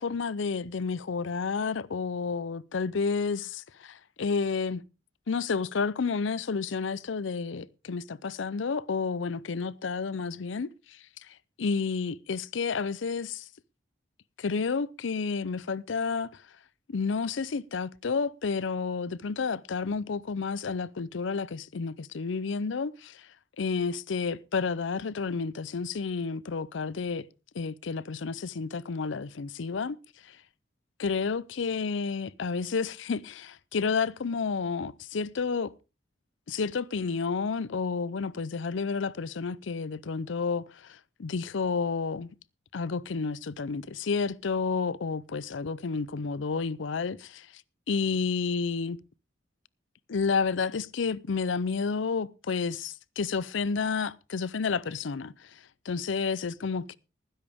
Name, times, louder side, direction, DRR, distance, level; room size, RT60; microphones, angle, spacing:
voice 1, 0.0-4.8 5.3-10.7 11.6-13.4 14.4-16.4 16.9-23.3 23.6-27.3 27.5-30.0 31.0-35.7 36.5-42.3 42.7-47.5 47.9-49.0 50.1-55.3 55.9-57.0, left 5 dB, 80° left, 0.5 m, -30 dB
19.0 x 10.5 x 3.5 m
head